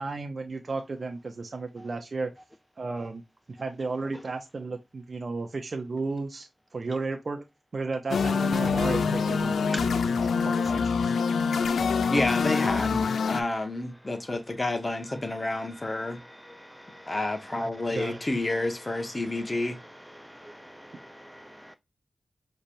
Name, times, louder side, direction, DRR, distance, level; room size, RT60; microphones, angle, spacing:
voice 1, 0.0-2.3 2.8-3.2 3.5-7.4 7.7-10.0 10.4-11.1 17.9-18.2, right 3 dB, 55° right, 0.6 m, -33 dB
sound 1, 8.1-13.4, left 5 dB, 85° left, 0.4 m, -25 dB
voice 2, 11.7-16.2 17.1-19.8, left 2 dB, 35° left, 1.3 m, -30 dB
voice 3, 16.0-17.2 20.2-21.8, equal, ahead, 0.5 m, -45 dB
5.1 x 3.3 x 2.6 m
cardioid pair, 45°, 0 cm